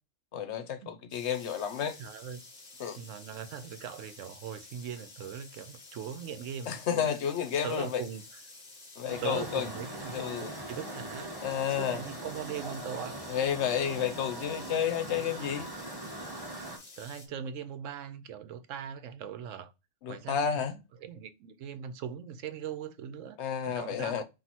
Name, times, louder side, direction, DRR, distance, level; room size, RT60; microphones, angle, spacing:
voice 1, 0.3-2.0 2.8-3.0 6.7-8.0 9.0-9.7 10.1-10.5 11.4-12.0 13.3-15.7 20.0-20.8 23.4-24.2, left 8 dB, 65° left, 0.9 m, -31 dB
sound 1, 1.1-17.3, left 3 dB, 35° left, 1.0 m, -51 dB
voice 2, 2.0-2.4 3.0-7.2 7.6-8.4 9.2-13.2 15.1-15.3 17.0-19.7 20.1-23.4 23.6-24.2, right 8 dB, 85° right, 1.0 m, -40 dB
sound 2, 9.1-16.8, right 1 dB, 20° right, 1.1 m, -41 dB
4.5 x 2.7 x 4.1 m
omnidirectional pair, 1.3 m